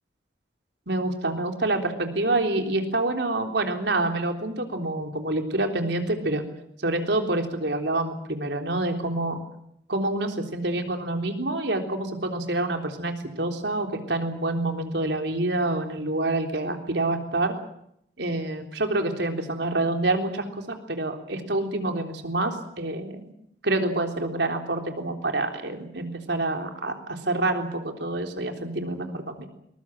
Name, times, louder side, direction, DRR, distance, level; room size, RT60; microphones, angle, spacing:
voice 1, 0.9-6.4 6.8-9.4 9.9-17.5 18.2-23.2 23.6-29.5, right 2 dB, 80° right, 4 dB, 3.6 m, -27 dB
22.0 x 21.0 x 7.6 m, 0.74 s
head